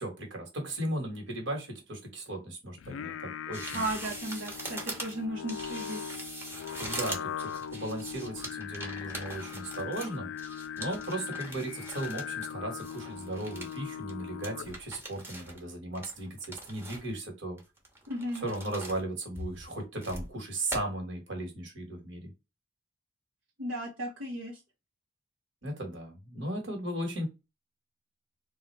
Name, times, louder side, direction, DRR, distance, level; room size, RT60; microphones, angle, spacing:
voice 1, 0.0-3.8 6.8-10.3 10.8-17.6 18.4-22.3 25.6-27.3, right 1 dB, 65° right, 2 dB, 1.6 m, -36 dB
Singing, 2.8-15.0, left 8 dB, 75° left, 0.3 m, -40 dB
sound 1, 3.5-12.5 12.8-13.8 14.1-14.2 14.4-15.6 15.9-17.2 17.6-19.0 19.3-20.3 20.7-20.8, right 1 dB, 10° right, 0.9 m, -42 dB
voice 2, 3.7-6.0 18.1-18.5 23.6-24.6, right 1 dB, 85° right, -4 dB, 1.1 m, -35 dB
3.7 x 2.4 x 3.2 m, 0.25 s
head